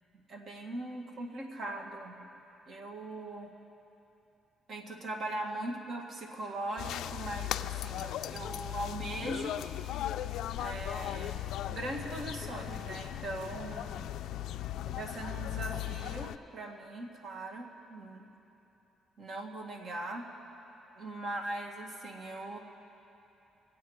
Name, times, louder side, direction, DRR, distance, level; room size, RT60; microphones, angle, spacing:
voice 1, 0.3-2.3 2.7-3.5 4.7-9.6 10.6-14.1 14.9-18.3 19.2-20.3 21.0-22.6, right 1 dB, 55° right, 2 dB, 1.8 m, -40 dB
sound 1, 6.8-16.4, left 12 dB, 85° left, 0.3 m, -37 dB
24.5 x 8.5 x 4.8 m, 3.0 s
cardioid pair, 90°, 0 cm